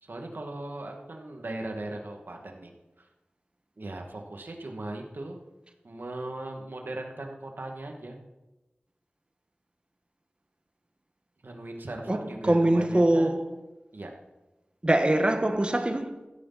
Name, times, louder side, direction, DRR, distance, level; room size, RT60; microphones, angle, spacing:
voice 1, 0.0-2.7 3.0-3.1 3.8-5.4 5.8-8.2 11.4-13.3 13.9-14.1, right 2 dB, 70° right, 2.2 m, -38 dB
voice 2, 12.1-13.5 14.8-16.1, right 1 dB, 30° right, 1.5 m, -23 dB
15.5 x 13.0 x 4.3 m
wide cardioid pair, 60°, 4 cm